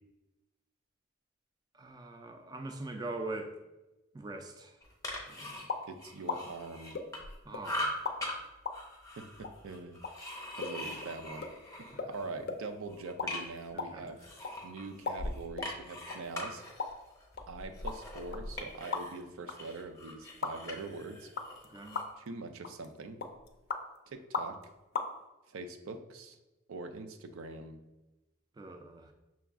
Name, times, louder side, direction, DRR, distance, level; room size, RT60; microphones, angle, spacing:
voice 1, 1.7-3.5 4.1-4.8 5.3-5.7 7.5-8.0 11.9-12.1 13.7-14.2 21.7-22.0 28.6-29.1, right 2 dB, 20° right, 5 dB, 0.3 m, -42 dB
sound 1, 4.8-7.3 7.6-8.3 8.7-12.3 12.7-13.7 14.2-19.2 19.5-22.1, left 1 dB, 15° left, 0.7 m, -42 dB
sound 2, 5.7-5.9 6.3-6.4 6.9-7.6 8.0-8.2 8.7-8.8 9.4-9.5 10.0-10.1 10.6-10.7 11.0-11.1 11.4-11.5 12.0-12.1 12.5-12.6 13.0-13.3 13.6-14.5 15.1-15.7 16.1-16.2 16.8-16.9 17.4-19.2 19.5-19.6 20.4-20.5 21.4-21.6 21.9-22.3 22.6-22.9 23.2-23.8 24.3-24.6 24.9-25.1, left 4 dB, 50° left, 0.4 m, -36 dB
voice 2, 5.9-7.0 9.2-10.0 10.6-14.2 14.6-16.6 17.5-21.3 22.2-23.2 24.1-24.6 25.5-26.4 26.7-27.8, right 3 dB, 90° right, 8 dB, 0.4 m, -43 dB
5.9 x 2.3 x 3.5 m, 1.0 s
head